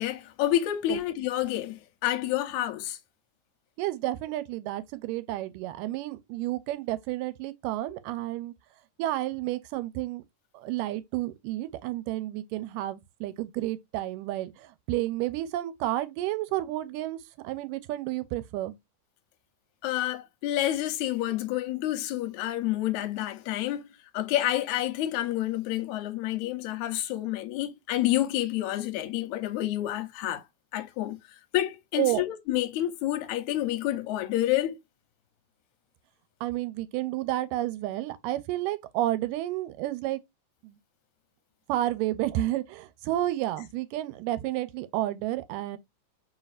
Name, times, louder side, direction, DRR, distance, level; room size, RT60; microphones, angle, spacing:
voice 1, 0.0-3.0 19.8-23.9 24.1-30.4 30.7-34.8, left 13 dB, 75° left, 2.0 m, -29 dB
voice 2, 3.8-8.5 9.0-10.2 10.5-17.2 17.4-18.8 32.0-32.2 36.4-40.2 40.6-40.8 41.7-45.8, right 15 dB, 85° right, 2.2 m, -31 dB
4.6 x 4.1 x 2.4 m
omnidirectional pair, 3.8 m